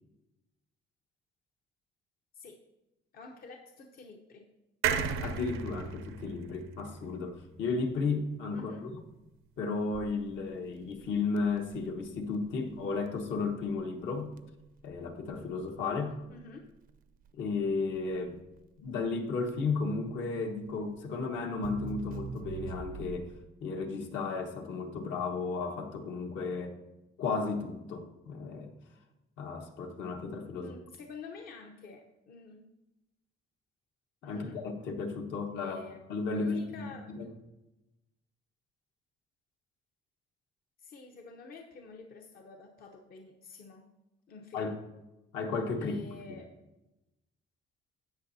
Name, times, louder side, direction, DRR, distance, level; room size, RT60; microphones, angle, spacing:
voice 1, 3.1-4.4 8.5-8.9 16.1-16.7 30.6-32.7 34.2-34.6 35.6-36.1 36.3-37.3 40.8-43.8 44.3-44.9 45.8-46.5, left 4 dB, 45° left, 2 dB, 0.8 m, -48 dB
sound 1, 4.8-8.3 8.7-8.8 9.0-9.1, right 7 dB, 80° right, 0.7 m, -35 dB
voice 2, 5.2-9.0 9.6-14.3 14.8-16.2 17.3-18.4 18.8-23.3 23.6-26.8 27.2-28.7 29.4-30.7 34.2-35.8 36.1-37.3 44.5-44.7 45.3-46.0 46.3-46.4, left 4 dB, 65° left, 3 dB, 1.3 m, -34 dB
Crackle, 9.9-23.5, right 7 dB, 45° right, 0.5 m, -46 dB
16.0 x 6.1 x 2.7 m, 0.99 s
cardioid pair, 155°, 21 cm